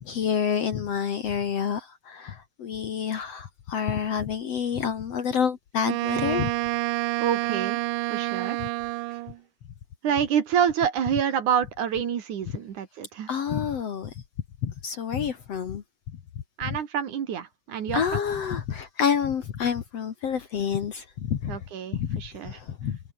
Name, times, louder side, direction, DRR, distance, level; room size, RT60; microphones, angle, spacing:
voice 1, 0.0-6.5 13.3-14.1 14.6-15.8 17.9-21.6 21.9-23.0, left 7 dB, 55° left, 2.2 m, -28 dB
Wind instrument woodwind instrument, 5.8-9.4, right 21 dB, 85° right, 1.8 m, -28 dB
voice 2, 7.2-7.8 8.1-8.6 10.0-13.3 16.6-18.2 21.5-22.6, right 8 dB, 60° right, 3.2 m, -27 dB
omnidirectional pair, 4.2 m